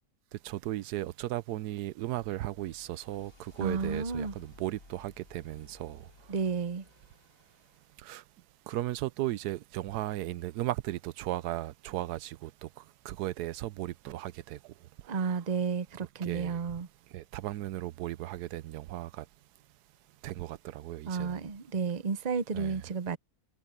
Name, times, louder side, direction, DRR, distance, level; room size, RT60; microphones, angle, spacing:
voice 1, 0.4-6.0 8.0-8.2 8.7-12.5 13.0-14.6 16.2-16.6 17.1-19.2 20.2-21.4 22.5-22.8, right 15 dB, 80° right, 1.1 m, -36 dB
sound 1, 1.9-8.0, left 3 dB, 55° left, 3.2 m, -55 dB
voice 2, 3.6-4.3 6.3-6.8 15.1-16.9 21.1-23.2, right 5 dB, 35° right, 0.7 m, -32 dB
omnidirectional pair, 1.7 m